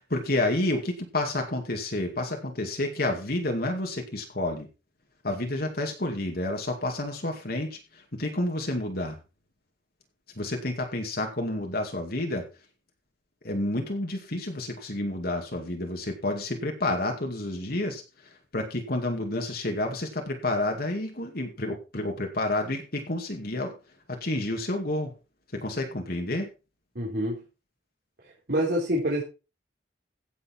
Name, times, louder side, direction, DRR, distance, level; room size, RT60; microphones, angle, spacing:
voice 1, 0.1-4.7 5.2-9.2 10.4-12.4 13.4-23.7 24.1-25.1 25.5-26.5, left 1 dB, 55° left, 3 dB, 2.4 m, -30 dB
voice 2, 27.0-27.4 28.5-29.2, equal, 60° right, -4 dB, 3.9 m, -26 dB
16.0 x 7.2 x 4.5 m, 0.31 s
head